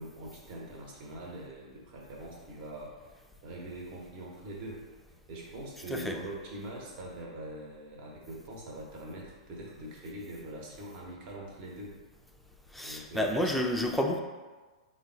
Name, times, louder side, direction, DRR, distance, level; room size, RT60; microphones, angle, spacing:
voice 1, 0.0-4.8 5.3-12.0 12.8-13.5, right 1 dB, 40° right, -2 dB, 1.0 m, -43 dB
voice 2, 12.7-14.2, left 1 dB, ahead, 1 dB, 0.4 m, -29 dB
3.7 x 2.2 x 3.8 m, 1.3 s
figure-of-eight pair, 105°, 3 cm